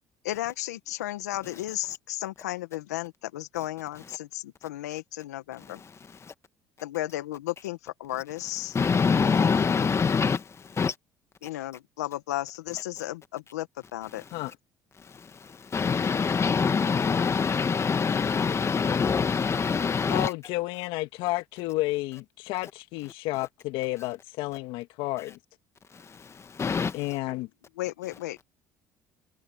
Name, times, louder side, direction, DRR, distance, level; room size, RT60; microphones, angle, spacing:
voice 1, 0.2-5.8 6.8-8.8 11.4-13.7 13.9-14.2 27.8-28.4, left 15 dB, 90° left, 1.6 m, -34 dB
voice 2, 8.7-10.9 15.1-20.3 25.9-27.0, left 5 dB, 30° left, 1.8 m, -25 dB
voice 3, 20.1-25.4 26.9-27.5, left 19 dB, 70° left, 1.9 m, -31 dB
hypercardioid pair, 70°, 9 cm